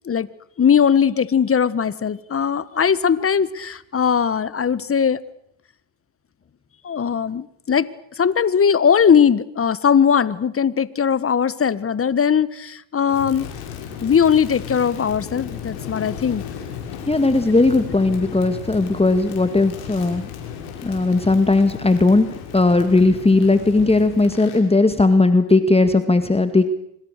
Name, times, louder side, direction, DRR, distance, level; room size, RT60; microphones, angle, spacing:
voice 1, 0.6-5.2 6.8-7.9 8.2-13.5 14.0-16.4, left 7 dB, 30° left, 18 dB, 1.4 m, -19 dB
Crackle, 13.1-24.7, left 8 dB, 85° left, 6.5 m, -35 dB
voice 2, 17.1-20.3 20.8-22.3 22.5-26.7, left 2 dB, 15° left, 10 dB, 2.0 m, -17 dB
26.0 x 25.5 x 6.7 m, 0.72 s
supercardioid pair, 80°, 45 cm